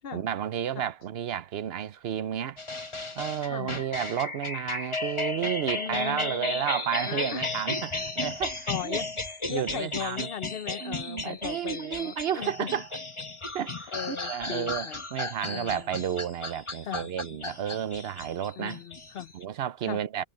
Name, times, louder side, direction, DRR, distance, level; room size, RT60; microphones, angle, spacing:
voice 1, 0.1-2.6 3.2-9.0 9.5-10.3 10.8-12.9 13.5-18.8 19.3-20.2, right 9 dB, 75° right, 0.9 m, -32 dB
sound 1, 2.6-19.4, left 2 dB, 30° left, 1.5 m, -34 dB
voice 2, 5.7-6.7 7.1-7.5 8.7-9.0 9.3-12.7 13.9-15.0 15.5-15.8 16.9-17.4 18.6-19.3 19.8-20.0, left 9 dB, 70° left, 0.9 m, -37 dB
omnidirectional pair, 1.1 m